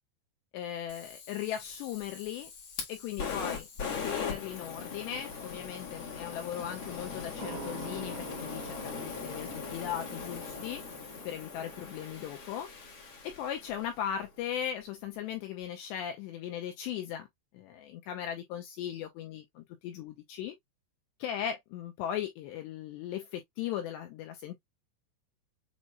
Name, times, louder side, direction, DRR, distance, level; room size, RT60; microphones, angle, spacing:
voice 1, 0.5-2.5 2.9-3.7 4.0-10.8 11.2-12.7 13.2-17.3 17.5-20.6 21.2-24.6, left 10 dB, 80° left, 2.6 m, -38 dB
Fire, 0.9-14.0, left 6 dB, 60° left, 1.7 m, -40 dB
sound 1, 7.4-14.5 14.8-14.9, right 16 dB, 80° right, 3.3 m, -49 dB
7.5 x 2.9 x 2.3 m
omnidirectional pair, 5.8 m